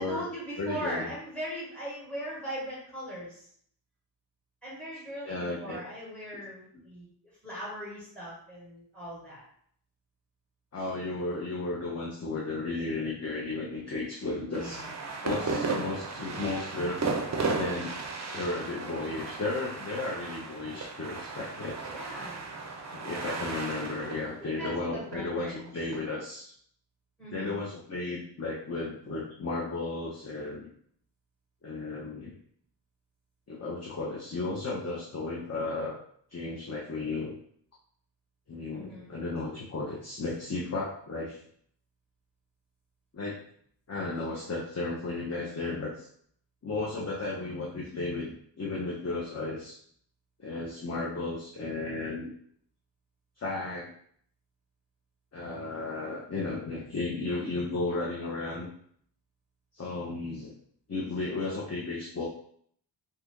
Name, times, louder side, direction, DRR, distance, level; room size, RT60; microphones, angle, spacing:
voice 1, 0.0-3.5 4.6-7.1 7.4-9.4 14.5-14.9 15.3-15.6 21.9-22.5 23.2-23.4 24.4-25.7 27.2-27.6 38.7-39.1, equal, ahead, -7 dB, 1.2 m, -39 dB
voice 2, 0.6-1.1 5.2-5.8 10.7-14.8 15.2-17.9 18.3-21.8 22.9-26.5 27.3-30.7 31.6-32.4 33.5-36.0 36.3-37.3 38.5-41.4 43.1-43.4 43.9-46.1 46.6-49.8 50.4-52.3 53.4-53.9 55.3-58.7 59.7-60.5 60.9-62.3, left 3 dB, 35° left, -3 dB, 0.6 m, -34 dB
sound 1, 14.5-26.0, right 3 dB, 40° right, 0.5 m, -35 dB
2.8 x 2.4 x 3.5 m, 0.63 s
wide cardioid pair, 110°, 43 cm